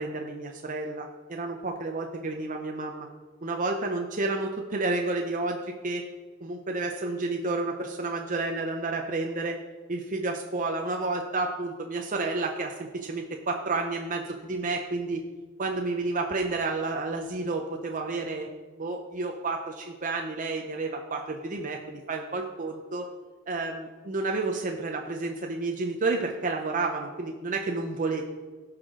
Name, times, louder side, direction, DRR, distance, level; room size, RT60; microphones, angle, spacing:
voice 1, 0.0-3.1 3.4-6.0 6.4-9.6 9.9-15.2 15.6-18.5 18.8-23.1 23.5-28.2, right 3 dB, 40° right, 2 dB, 0.7 m, -30 dB
16.5 x 6.0 x 3.8 m, 1.4 s
head